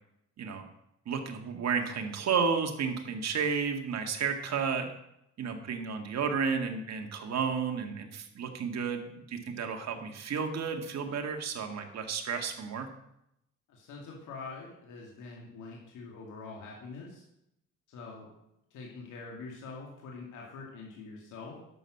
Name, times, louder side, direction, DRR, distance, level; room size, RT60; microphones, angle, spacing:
voice 1, 1.1-4.9 5.4-12.9, right 6 dB, 60° right, 4 dB, 1.9 m, -32 dB
voice 2, 13.7-17.2 17.9-18.3 18.7-21.6, left 4 dB, 85° left, -2 dB, 2.4 m, -44 dB
10.5 x 7.1 x 6.5 m, 0.81 s
cardioid pair, 90°, 30 cm